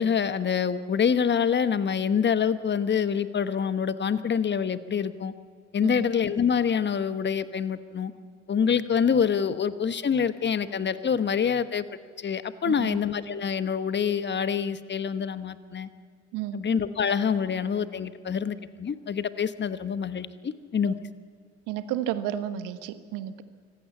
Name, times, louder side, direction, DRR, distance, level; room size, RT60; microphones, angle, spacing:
voice 1, 0.0-5.3 5.7-8.1 8.5-11.8 12.2-15.9 16.5-21.0, left 7 dB, 30° left, 13 dB, 1.2 m, -26 dB
voice 2, 12.7-13.0 16.3-16.6 20.8-20.9 21.7-23.4, right 11 dB, 65° right, 12 dB, 1.4 m, -32 dB
25.0 x 15.5 x 8.3 m, 2.1 s
hypercardioid pair, 55°, 34 cm